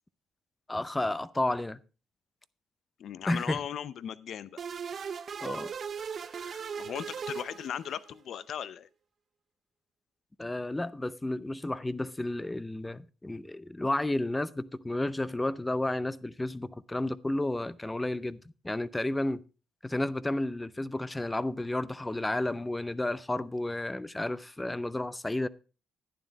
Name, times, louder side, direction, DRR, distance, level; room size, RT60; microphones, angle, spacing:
voice 1, 0.7-1.8 3.3-3.6 5.4-5.7 6.3-6.6 10.4-18.4 18.6-19.4 19.8-25.5, left 1 dB, 15° left, 0.6 m, -32 dB
voice 2, 3.0-4.6 6.8-8.9, left 9 dB, 65° left, 0.6 m, -37 dB
sound 1, 4.6-8.2, right 6 dB, 50° right, 0.5 m, -38 dB
11.0 x 9.6 x 4.0 m
cardioid pair, 90°, 0 cm